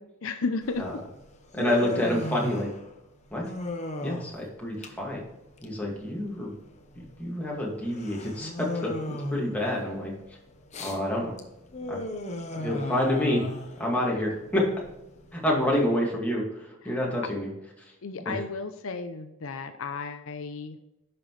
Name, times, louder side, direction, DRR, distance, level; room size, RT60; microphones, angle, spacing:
voice 1, 0.2-1.0 16.8-17.0 18.0-20.8, left 4 dB, 65° left, 8 dB, 0.6 m, -33 dB
Human voice, 0.6-15.8, left 1 dB, 30° left, 1.0 m, -37 dB
voice 2, 1.5-2.7 3.3-3.4 4.0-5.2 5.6-6.5 7.2-10.1 10.8-11.4 11.9-12.0 12.6-13.4 13.8-14.7 15.3-17.5 18.3-18.4, left 1 dB, 5° left, -3 dB, 2.1 m, -28 dB
10.5 x 6.0 x 3.2 m, 0.95 s
head